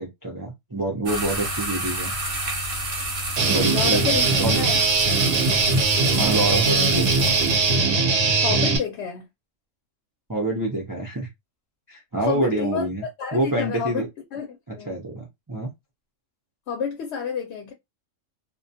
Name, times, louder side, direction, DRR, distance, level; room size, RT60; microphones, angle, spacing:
voice 1, 0.0-2.1 3.5-4.1 4.4-4.6 6.1-7.4 10.3-11.3 11.9-13.0 13.3-14.1 14.9-15.7, right 1 dB, 30° right, 0.4 m, -27 dB
sound 1, 1.1-7.9, right 1 dB, 50° right, 0.8 m, -30 dB
Guitar, 3.4-8.8, right 3 dB, 80° right, 1.0 m, -20 dB
voice 2, 3.7-4.2 4.6-4.8 8.4-9.3 12.2-12.9 13.2-14.0 14.3-14.5 14.8-15.1 16.7-17.7, left 6 dB, 65° left, 0.8 m, -29 dB
2.3 x 2.2 x 2.6 m
omnidirectional pair, 1.3 m